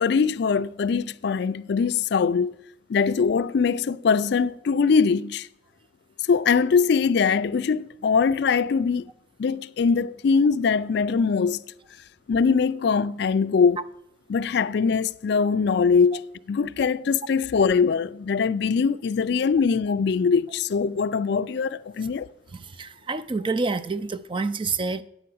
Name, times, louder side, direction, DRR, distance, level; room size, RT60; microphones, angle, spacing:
voice 1, 0.0-2.5 2.9-5.5 6.3-9.1 9.4-11.6 12.3-13.8 14.3-22.3, left 5 dB, 60° left, 0.4 m, -22 dB
voice 2, 22.5-25.0, right 3 dB, 25° right, 0.4 m, -28 dB
9.1 x 5.7 x 7.7 m
head